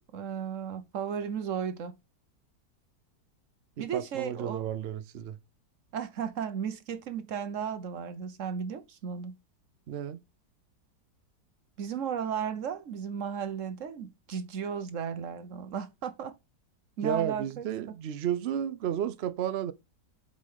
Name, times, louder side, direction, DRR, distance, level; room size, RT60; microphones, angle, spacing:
voice 1, 0.1-2.0 3.8-4.7 5.9-9.4 11.8-16.3 17.0-17.7, right 7 dB, 50° right, 1.2 m, -35 dB
voice 2, 3.8-5.4 9.9-10.2 17.0-19.7, right 9 dB, 80° right, 0.5 m, -32 dB
8.1 x 5.7 x 3.6 m
omnidirectional pair, 1.9 m